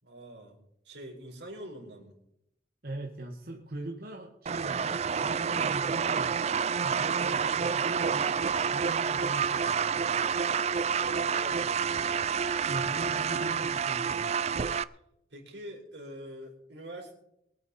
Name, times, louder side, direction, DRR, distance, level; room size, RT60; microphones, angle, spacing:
voice 1, 0.0-0.5 0.8-2.1 10.9-12.1 15.3-17.1, right 1 dB, 85° right, 0 dB, 4.7 m, -44 dB
voice 2, 2.8-6.4 6.8-10.2 12.7-14.4, right 1 dB, 55° right, 1 dB, 1.5 m, -41 dB
sound 1, 4.5-14.8, right 6 dB, 35° right, 0.4 m, -29 dB
22.5 x 9.1 x 4.3 m, 0.79 s
head